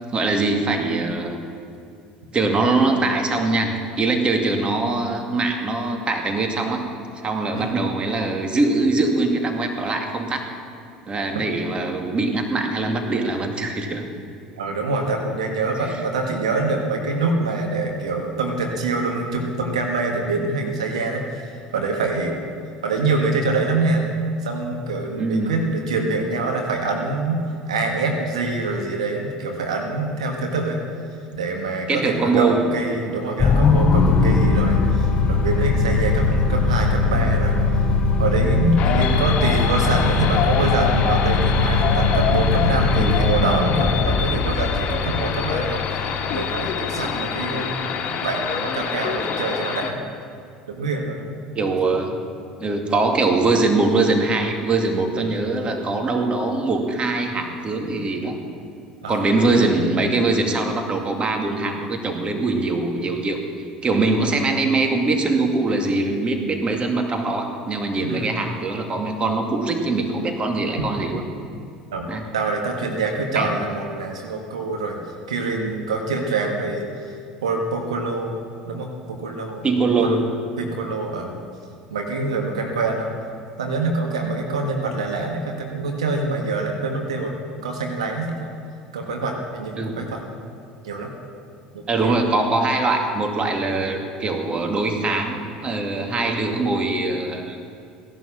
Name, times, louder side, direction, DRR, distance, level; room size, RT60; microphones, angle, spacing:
voice 1, 0.1-1.4 2.3-6.9 7.2-10.5 11.1-14.0 25.2-25.6 31.9-32.7 42.9-43.2 47.0-47.2 51.5-52.2 52.6-58.4 59.1-63.4 63.8-71.2 72.1-72.2 73.4-73.5 79.6-80.3 89.8-90.0 91.9-97.6, right 3 dB, 30° right, 4 dB, 2.4 m, -22 dB
voice 2, 7.5-7.9 14.6-22.4 22.8-24.0 24.4-30.8 31.3-37.6 38.2-46.0 46.3-50.0 50.7-51.3 55.2-55.4 59.0-59.7 68.0-68.4 71.9-72.1 72.3-75.0 75.3-77.1 77.4-78.4 78.7-79.6 80.0-80.2 80.6-81.4 81.9-83.1 83.6-87.3 87.6-88.5 88.9-90.2 90.8-91.1 91.7-92.2, right 3 dB, 85° right, 2 dB, 1.6 m, -25 dB
sound 1, 33.4-47.9, left 4 dB, 30° left, 3.5 m, -20 dB
sound 2, 38.8-49.9, left 7 dB, 45° left, 1.7 m, -26 dB
16.5 x 11.5 x 7.2 m, 2.3 s
hypercardioid pair, 70°, 3 cm